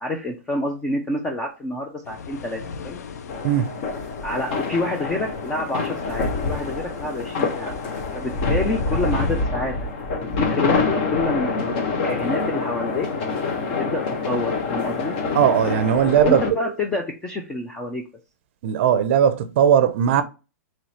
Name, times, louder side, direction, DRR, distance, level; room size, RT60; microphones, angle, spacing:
voice 1, 0.0-3.0 4.2-7.8 8.1-9.7 10.2-13.1 13.8-15.1 16.1-18.0, left 2 dB, 10° left, 0.3 m, -28 dB
sound 1, 2.0-9.5, left 6 dB, 80° left, 0.5 m, -39 dB
sound 2, 3.3-16.5, left 4 dB, 40° left, 0.7 m, -26 dB
voice 2, 3.4-3.8 15.3-16.6 18.6-20.2, right 9 dB, 45° right, 0.5 m, -18 dB
3.1 x 3.0 x 4.0 m
hypercardioid pair, 165°, 9 cm